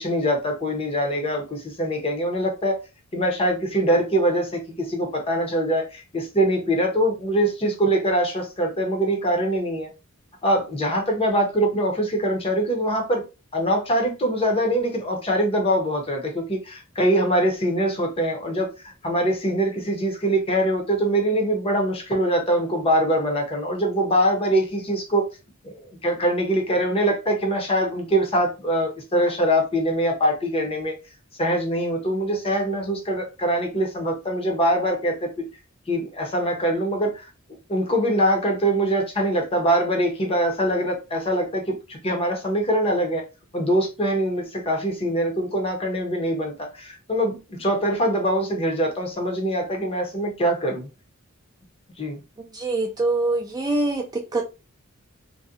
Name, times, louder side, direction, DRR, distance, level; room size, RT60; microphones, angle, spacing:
voice 1, 0.0-2.8 3.1-9.9 10.4-13.2 13.5-25.3 25.6-30.9 31.4-35.5 35.9-37.3 37.7-43.2 43.5-50.9 52.0-52.2, right 1 dB, 25° left, 0.6 m, -23 dB
voice 2, 52.5-54.0 54.3-54.4, right 2 dB, 20° right, 0.4 m, -23 dB
2.6 x 2.1 x 2.4 m
head